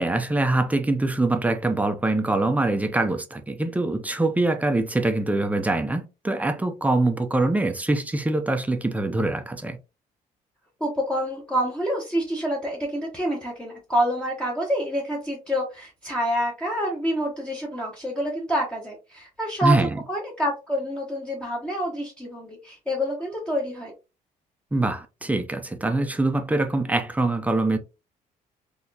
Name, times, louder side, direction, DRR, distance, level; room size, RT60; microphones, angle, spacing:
voice 1, 0.0-9.8 19.6-19.9 24.7-27.8, right 2 dB, 10° right, 0.5 m, -24 dB
voice 2, 10.8-23.9, equal, 5° left, 0.9 m, -27 dB
4.1 x 2.9 x 2.7 m
cardioid pair, 130°, 16 cm